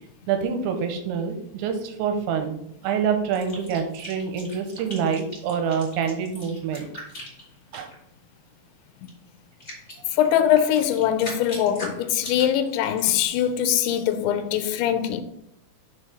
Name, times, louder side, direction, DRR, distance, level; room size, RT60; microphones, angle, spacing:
voice 1, 0.3-6.9 7.7-7.9, right 6 dB, 85° right, 3.1 m, -26 dB
sound 1, 3.3-8.0 9.0-9.1 9.6-13.2, left 1 dB, 20° left, 2.7 m, -40 dB
voice 2, 10.1-15.2, left 10 dB, 85° left, 2.9 m, -22 dB
6.6 x 4.6 x 5.0 m
omnidirectional pair, 5.2 m